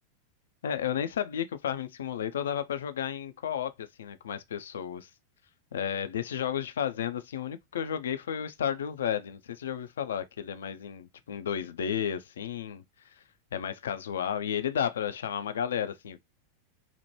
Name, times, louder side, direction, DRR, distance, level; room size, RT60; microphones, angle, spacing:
voice 1, 0.6-5.1 5.7-13.2 13.5-16.2, left 9 dB, 65° left, 0.3 m, -33 dB
2.9 x 2.1 x 3.0 m
figure-of-eight pair, 90°, 0 cm